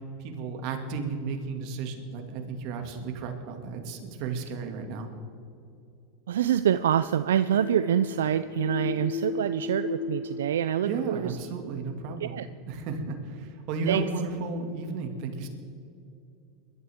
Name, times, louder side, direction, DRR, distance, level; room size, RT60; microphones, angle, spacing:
voice 1, 0.2-5.1 10.8-15.5, right 4 dB, 60° right, 4 dB, 2.2 m, -33 dB
voice 2, 6.3-11.3 12.2-12.5 13.9-14.0, right 10 dB, 85° right, 13 dB, 0.3 m, -26 dB
sound 1, 7.4-11.9, left 6 dB, 55° left, 1.3 m, -36 dB
22.0 x 12.5 x 3.6 m, 2.6 s
hypercardioid pair, 110°, 0 cm